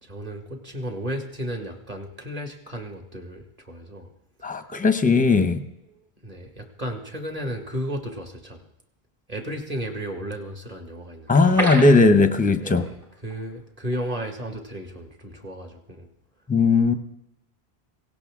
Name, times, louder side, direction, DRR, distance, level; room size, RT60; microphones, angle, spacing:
voice 1, 0.0-4.1 6.2-8.7 9.3-11.6 12.6-12.9 13.2-16.1, equal, 35° right, 4 dB, 2.0 m, -34 dB
voice 2, 4.4-5.6 11.3-12.8 16.5-16.9, left 3 dB, 10° left, 9 dB, 0.7 m, -18 dB
water drips dripping slowed reverse, 11.3-13.0 13.3-13.4 13.8-14.0, right 1 dB, 55° right, 4.7 m, -29 dB
17.5 x 17.0 x 3.7 m, 0.87 s
omnidirectional pair, 1.1 m